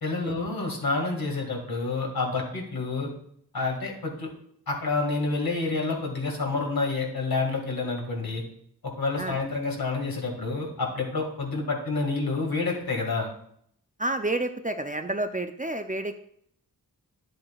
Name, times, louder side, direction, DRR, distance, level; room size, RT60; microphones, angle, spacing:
voice 1, 0.0-3.1 3.5-4.3 4.7-8.4 9.0-13.3, left 3 dB, 70° left, 0 dB, 2.1 m, -28 dB
voice 2, 14.0-16.1, right 2 dB, 20° right, 7 dB, 0.5 m, -29 dB
10.5 x 7.7 x 2.4 m, 0.67 s
wide cardioid pair, 70°, 37 cm